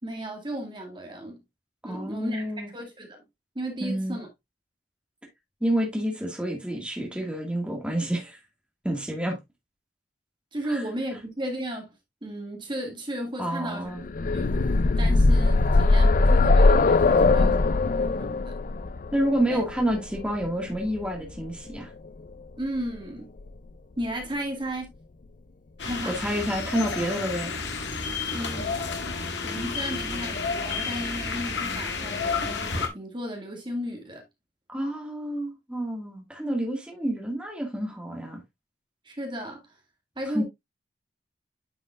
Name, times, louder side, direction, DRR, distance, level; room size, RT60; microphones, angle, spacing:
voice 1, 0.0-1.4 1.8-3.2 3.6-4.3 10.5-11.9 12.2-13.9 14.3-14.6 15.0-17.5 18.1-18.6 19.5-19.6 22.6-23.3 24.0-24.9 25.8-26.1 28.3-29.0 29.4-34.2 39.1-39.7 40.2-40.4, right 1 dB, 25° right, 2.0 m, -34 dB
voice 2, 1.8-2.7 3.8-4.2 5.6-8.4 8.8-9.4 10.7-10.8 13.4-14.0 17.1-17.6 19.1-21.9 26.1-27.5 34.7-38.4 40.3-40.4, right 1 dB, 5° right, 1.9 m, -29 dB
sound 1, 14.0-21.8 22.9-23.0 23.4-23.5, left 3 dB, 50° left, 0.5 m, -21 dB
sound 2, 25.8-32.9, left 4 dB, 80° left, 1.8 m, -31 dB
9.5 x 5.5 x 2.4 m
head